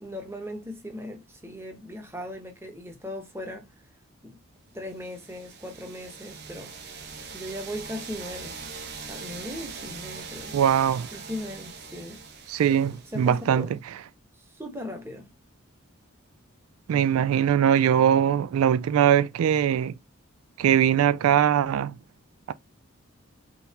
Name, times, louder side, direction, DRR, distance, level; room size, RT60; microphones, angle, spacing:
voice 1, 0.0-3.7 4.2-4.4 4.7-6.8 7.3-8.5 9.1-10.6 11.1-12.2 12.7-12.8 13.1-13.7 14.5-15.3, left 1 dB, 10° right, 1.0 m, -38 dB
sound 1, 5.0-13.7, right 5 dB, 50° right, 1.0 m, -42 dB
voice 2, 10.5-11.1 12.5-13.7 16.9-19.9 20.6-21.9 22.5-22.6, right 9 dB, 85° right, 0.3 m, -21 dB
4.0 x 3.9 x 2.9 m
head